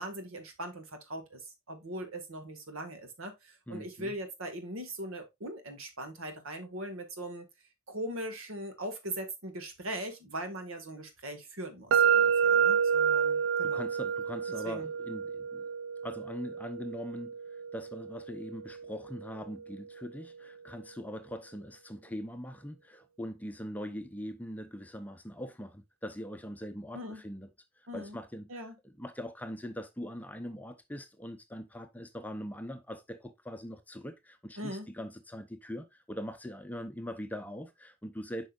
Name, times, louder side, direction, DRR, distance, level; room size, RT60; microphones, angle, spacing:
voice 1, 0.0-1.4 1.7-7.5 7.9-13.9 14.6-14.9 26.9-27.2 27.9-28.2 28.5-28.8 34.6-34.9, right 1 dB, 85° right, 1.7 m, -40 dB
voice 2, 3.7-4.1 13.6-15.6 16.0-27.5 27.8-28.5 28.8-38.5, equal, 10° left, 0.6 m, -42 dB
sound 1, 11.9-19.8, right 7 dB, 65° right, 0.3 m, -29 dB
8.2 x 5.3 x 2.4 m
head